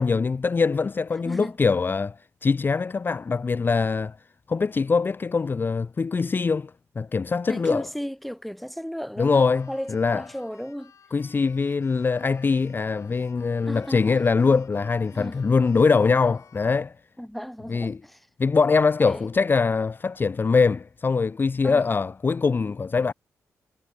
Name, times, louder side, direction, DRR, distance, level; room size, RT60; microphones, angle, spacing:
voice 1, 0.0-4.2 4.5-7.9 9.2-10.2 11.1-16.9 17.7-18.0 18.4-23.1, left 4 dB, 35° left, 0.6 m, -23 dB
voice 2, 7.5-10.9 13.7-14.3 15.1-15.4 17.2-18.2 19.0-19.2 21.6-21.8, equal, ahead, 2.7 m, -35 dB
Keyboard (musical), 9.2-16.9, left 7 dB, 65° left, 6.9 m, -57 dB
cardioid pair, 65°, 6 cm